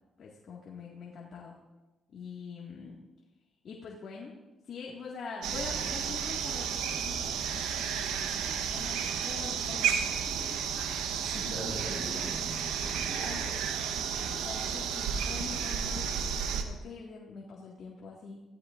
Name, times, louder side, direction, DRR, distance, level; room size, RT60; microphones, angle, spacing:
voice 1, 0.2-1.6 2.1-3.0 3.6-4.3 4.7-10.6 10.9-11.1 11.3-11.6 13.2-13.4 14.4-18.4, left 5 dB, 60° left, -3 dB, 1.9 m, -44 dB
sound 1, 5.4-16.6, right 7 dB, 90° right, 1.1 m, -32 dB
voice 2, 11.1-13.9, right 1 dB, 70° right, -1 dB, 4.8 m, -42 dB
16.5 x 14.5 x 2.6 m, 1.1 s
cardioid pair, 90°, 0 cm